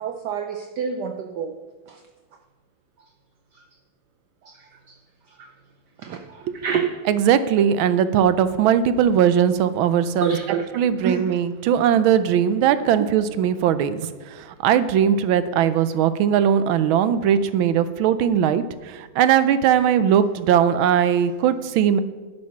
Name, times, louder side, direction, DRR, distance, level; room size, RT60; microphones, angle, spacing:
voice 1, 0.0-1.6 1.9-2.0 3.5-3.6 4.4-5.0 5.3-5.5 6.0-7.0 10.2-10.7 11.0-11.3 13.0-13.1, right 7 dB, 65° right, 4 dB, 1.2 m, -27 dB
voice 2, 7.1-10.3 10.7-14.0 14.6-22.0, right 9 dB, 85° right, 13 dB, 1.5 m, -19 dB
11.5 x 6.2 x 5.8 m, 1.3 s
omnidirectional pair, 2.2 m